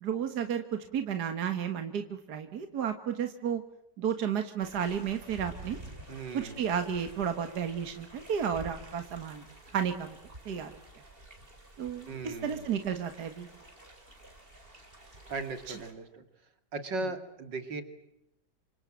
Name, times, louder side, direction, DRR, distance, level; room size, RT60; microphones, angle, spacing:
voice 1, 0.0-3.6 4.0-5.8 6.3-9.4 9.7-10.2 10.5-10.7 11.8-13.5, right 8 dB, 65° right, 7 dB, 2.0 m, -32 dB
sound 1, 4.6-15.9, right 1 dB, 30° right, 5.3 m, -50 dB
voice 2, 6.1-6.7 12.1-12.8 15.3-16.2 16.7-17.8, right 3 dB, 85° right, 8 dB, 3.3 m, -38 dB
27.5 x 25.5 x 7.6 m, 0.84 s
omnidirectional pair, 1.9 m